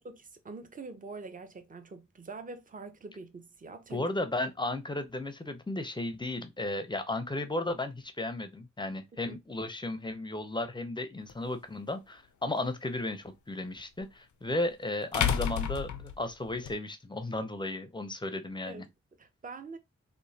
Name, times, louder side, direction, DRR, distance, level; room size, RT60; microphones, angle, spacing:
voice 1, 0.0-4.1 9.2-9.4 18.6-18.8 19.2-19.8, right 3 dB, 30° right, 0.5 m, -44 dB
voice 2, 3.9-18.9, left 2 dB, 15° left, 0.5 m, -34 dB
sound 1, 11.3-11.4 14.0-14.1 15.1-16.7, left 8 dB, 75° left, 0.5 m, -30 dB
3.0 x 2.1 x 2.7 m
cardioid pair, 55°, 29 cm